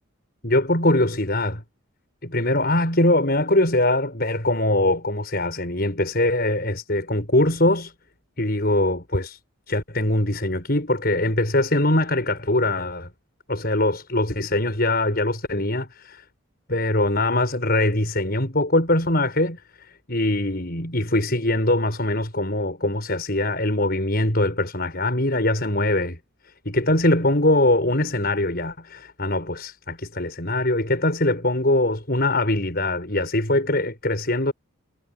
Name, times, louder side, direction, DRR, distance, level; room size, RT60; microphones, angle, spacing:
voice 1, 0.4-1.6 2.2-7.9 8.4-9.4 9.7-13.1 13.5-16.2 16.7-26.2 26.4-34.5, left 1 dB, 45° left, 6.4 m, -22 dB
head